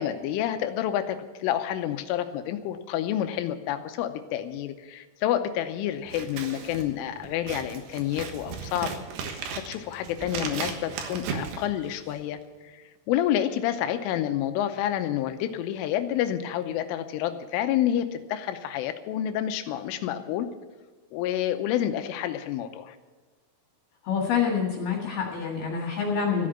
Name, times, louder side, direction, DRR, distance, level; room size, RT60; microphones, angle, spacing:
voice 1, 0.0-8.9 9.2-12.4 12.6-20.5 21.1-23.0, left 11 dB, 85° left, 9 dB, 3.3 m, -29 dB
Scissors, 6.0-12.3, right 6 dB, 70° right, 3.4 m, -36 dB
voice 2, 24.0-26.5, left 6 dB, 60° left, -1 dB, 3.5 m, -27 dB
14.5 x 8.6 x 9.0 m, 1.3 s
omnidirectional pair, 5.7 m